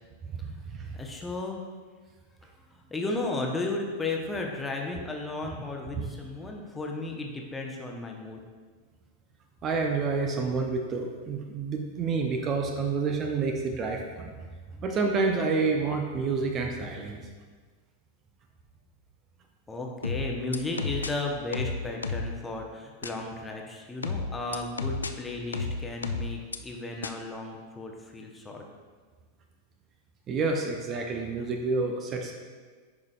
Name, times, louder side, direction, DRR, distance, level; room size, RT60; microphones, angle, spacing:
voice 1, 0.4-1.0 5.9-6.1 9.6-14.3 14.8-17.2 30.3-32.4, right 4 dB, 30° right, 3 dB, 0.6 m, -29 dB
voice 2, 0.9-1.6 2.7-8.4 19.7-28.6, left 2 dB, 10° left, 0 dB, 0.9 m, -34 dB
sound 1, 20.0-21.1 21.5-22.3 23.0-23.1 24.0-25.1 25.5-26.6 27.0-27.1, left 4 dB, 75° left, 0.3 m, -31 dB
10.5 x 4.9 x 2.4 m, 1.5 s
figure-of-eight pair, 90°, 0 cm